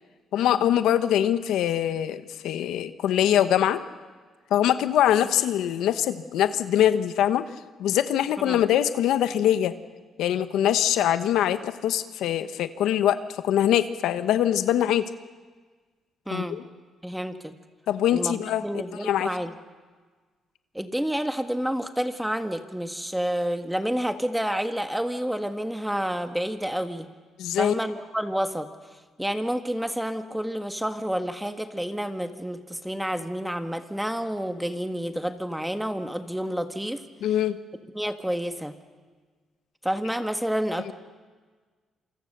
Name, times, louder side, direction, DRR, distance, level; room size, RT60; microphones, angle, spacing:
voice 1, 0.3-3.8 4.5-7.5 7.8-9.7 10.2-13.2 13.4-15.1 16.3-16.6 17.9-18.6 19.0-19.3 27.4-27.8 37.2-37.5 40.9-41.0, left 11 dB, 85° left, 11 dB, 1.1 m, -23 dB
voice 2, 16.3-16.6 17.0-17.5 18.1-19.6 20.7-27.1 27.5-28.7 29.2-37.0 37.9-38.7 39.8-40.9, equal, 5° right, 7 dB, 1.6 m, -29 dB
27.5 x 25.0 x 6.7 m, 1.4 s
cardioid pair, 90°, 0 cm